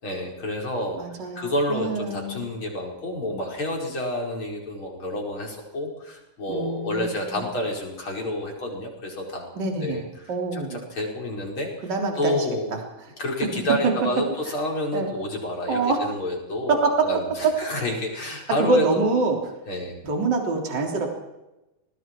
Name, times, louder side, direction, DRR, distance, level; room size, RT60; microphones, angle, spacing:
voice 1, 0.0-1.0 1.4-9.5 9.8-11.9 12.2-12.7 13.2-19.1 19.7-20.0, left 1 dB, 35° left, 0 dB, 5.7 m, -29 dB
voice 2, 0.9-2.4 6.5-7.5 9.6-10.0 10.3-10.8 11.8-12.5 13.0-13.1 14.9-15.1 15.7-16.0 16.7-16.9 18.6-19.4 20.0-21.1, right 3 dB, 30° right, 1 dB, 3.8 m, -25 dB
28.5 x 20.0 x 4.6 m, 0.98 s
omnidirectional pair, 3.9 m